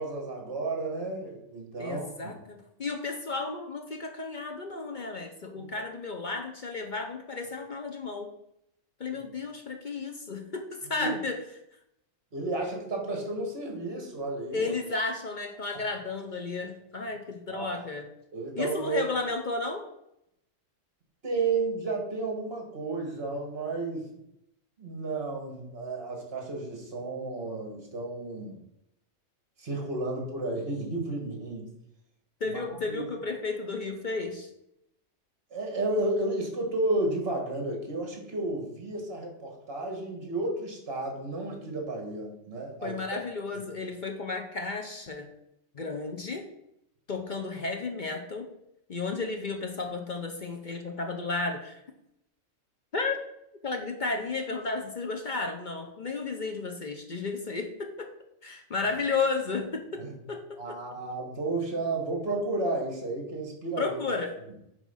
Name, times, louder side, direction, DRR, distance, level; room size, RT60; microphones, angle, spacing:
voice 1, 0.0-2.3 5.5-5.6 11.0-11.1 12.3-14.7 17.5-17.9 18.3-19.0 21.2-24.2 24.8-28.6 29.6-31.7 32.4-33.0 35.5-43.0 43.5-43.6 60.0-60.1 60.6-64.0, right 2 dB, 50° right, 1 dB, 1.9 m, -32 dB
voice 2, 1.8-8.3 9.0-11.4 14.5-18.1 18.5-19.8 32.4-34.5 42.8-45.3 45.7-46.5 47.1-48.5 48.9-51.8 52.9-53.2 53.6-58.1 58.4-60.8 63.8-64.3, left 4 dB, 45° left, 3 dB, 0.8 m, -33 dB
8.9 x 3.3 x 5.6 m, 0.80 s
omnidirectional pair, 1.3 m